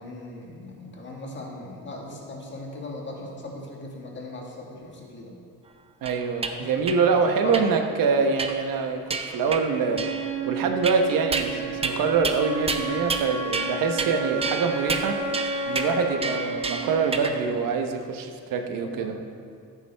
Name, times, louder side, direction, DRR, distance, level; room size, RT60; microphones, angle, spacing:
voice 1, 0.0-5.3 6.5-7.6 18.8-19.1, left 2 dB, 35° left, -1 dB, 1.6 m, -38 dB
voice 2, 6.0-9.0 9.3-10.0 10.5-15.2 15.7-19.2, right 5 dB, 80° right, 5 dB, 1.0 m, -25 dB
sound 1, 6.1-6.5 6.9-7.0 7.5-7.7 8.4-8.7 9.1-9.6 10.0-10.4 10.8-11.5 11.8-12.0 12.2-12.4 12.7-13.3 13.5-14.1 14.4-17.4, right 4 dB, 20° right, 0.5 m, -30 dB
Wind instrument woodwind instrument, 9.9-17.9, right 2 dB, 60° right, 1.8 m, -32 dB
14.0 x 8.3 x 3.4 m, 2.3 s
cardioid pair, 155°, 33 cm